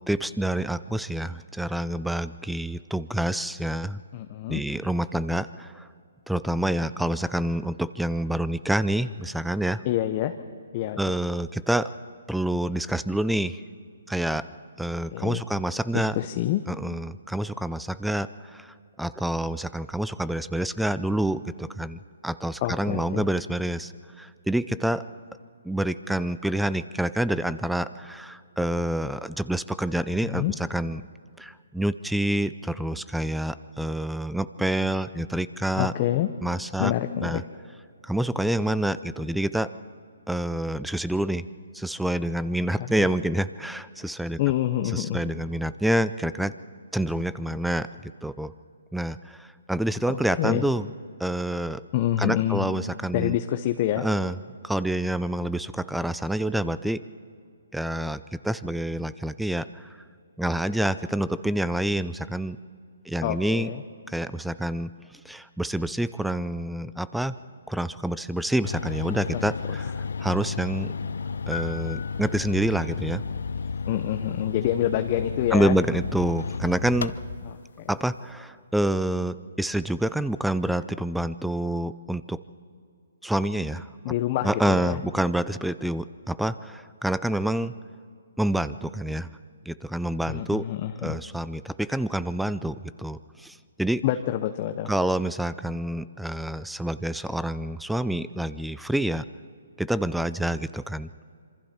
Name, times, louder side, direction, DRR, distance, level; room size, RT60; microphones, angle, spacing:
voice 1, 0.1-4.0 4.5-5.9 6.3-9.8 11.0-11.9 12.3-13.6 14.1-14.5 14.8-16.2 16.7-23.9 24.2-25.0 25.6-31.0 31.4-35.9 36.4-36.9 37.2-37.4 38.0-39.7 40.3-41.5 41.7-44.4 44.9-46.5 46.9-48.5 48.9-50.9 51.2-51.8 52.2-53.4 54.0-54.4 54.6-57.0 57.7-59.9 60.4-62.6 63.1-63.7 64.1-64.9 65.2-67.3 67.7-69.9 70.2-70.9 71.5-73.2 75.5-77.1 77.9-82.4 83.2-83.9 84.4-87.7 88.4-89.3 89.7-90.7 91.0-94.0 94.9-99.2 99.8-101.1, right 1 dB, ahead, 15 dB, 0.4 m, -27 dB
voice 2, 4.1-4.6 9.8-10.4 10.7-11.0 15.1-15.4 15.9-16.6 22.6-23.3 30.2-30.5 35.8-36.3 36.8-37.4 42.8-43.1 44.4-45.2 50.1-50.6 51.9-52.7 53.1-54.1 63.2-63.8 69.3-69.4 73.9-75.7 77.4-77.9 84.0-85.0 90.3-91.2 94.0-94.9, left 13 dB, 35° left, 7 dB, 0.9 m, -27 dB
sound 1, 68.6-77.6, left 5 dB, 70° left, 0.7 m, -32 dB
sound 2, 71.5-73.0, left 6 dB, 55° left, 1.8 m, -39 dB
26.5 x 24.0 x 4.4 m, 2.3 s
hypercardioid pair, 145°, 0 cm